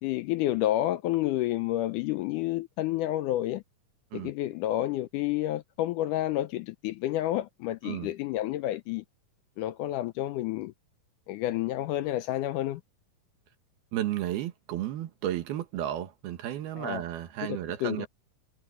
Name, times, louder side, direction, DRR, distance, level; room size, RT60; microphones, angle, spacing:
voice 1, 0.0-3.6 4.1-9.0 9.6-10.7 11.3-12.8 16.8-17.0 17.8-18.1, left 14 dB, 80° left, 1.8 m, -29 dB
voice 2, 13.9-18.1, right 12 dB, 85° right, 3.5 m, -33 dB
omnidirectional pair, 4.3 m